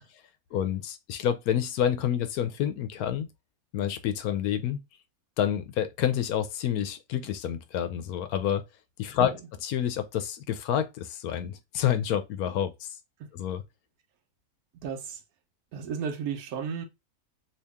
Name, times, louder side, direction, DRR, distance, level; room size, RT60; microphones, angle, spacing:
voice 1, 0.5-3.3 3.7-4.8 5.4-8.6 9.0-12.9 13.3-13.6, left 9 dB, 75° left, 1.0 m, -28 dB
voice 2, 14.8-15.2 15.7-16.9, right 7 dB, 75° right, 1.1 m, -34 dB
2.9 x 2.8 x 3.4 m
omnidirectional pair, 1.7 m